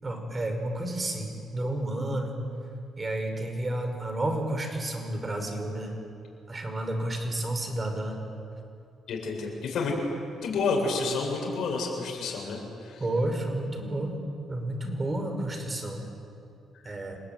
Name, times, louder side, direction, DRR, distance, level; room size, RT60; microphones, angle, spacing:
voice 1, 0.0-2.4 3.0-5.9 6.5-8.2 13.0-14.2 14.5-16.0 16.8-17.2, right 1 dB, 25° right, 5 dB, 5.6 m, -31 dB
voice 2, 9.1-10.0 10.4-13.0, left 4 dB, 70° left, 0 dB, 7.5 m, -29 dB
28.5 x 20.0 x 9.4 m, 2.5 s
cardioid pair, 90°, 0 cm